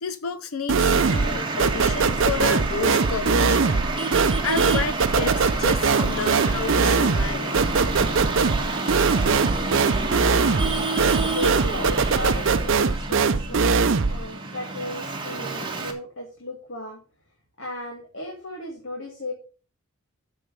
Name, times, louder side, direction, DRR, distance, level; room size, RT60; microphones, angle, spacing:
voice 1, 0.0-3.7 4.4-7.6, left 5 dB, 85° left, 0.7 m, -30 dB
sound 1, 0.7-1.3 1.6-14.2, right 4 dB, 60° right, 0.6 m, -21 dB
Traffic noise roadway noise, 0.9-15.9, right 3 dB, 25° right, 1.6 m, -29 dB
voice 2, 11.2-13.7 14.1-17.0 17.6-19.3, left 1 dB, 60° left, 2.6 m, -35 dB
7.0 x 6.8 x 6.8 m
head